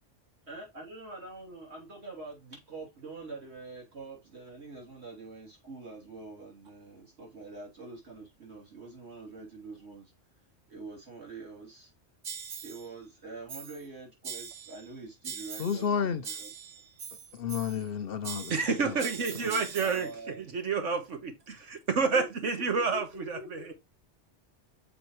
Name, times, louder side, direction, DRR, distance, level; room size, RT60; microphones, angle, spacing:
voice 1, 0.5-10.1 10.7-11.9 12.6-16.5 19.0-20.5 22.1-22.3 22.7-23.7, right 3 dB, 60° right, 3.2 m, -45 dB
sound 1, 12.2-12.9 13.5-13.9 14.2-14.9 15.2-15.9 16.2-17.9 18.2-20.1, right 7 dB, 45° right, 0.5 m, -42 dB
voice 2, 15.6-16.2 17.3-18.5 18.8-19.0, left 7 dB, 60° left, 0.8 m, -31 dB
voice 3, 18.5-20.1 20.5-23.6, right 4 dB, 80° right, 1.6 m, -29 dB
6.9 x 4.9 x 3.1 m
omnidirectional pair, 1.2 m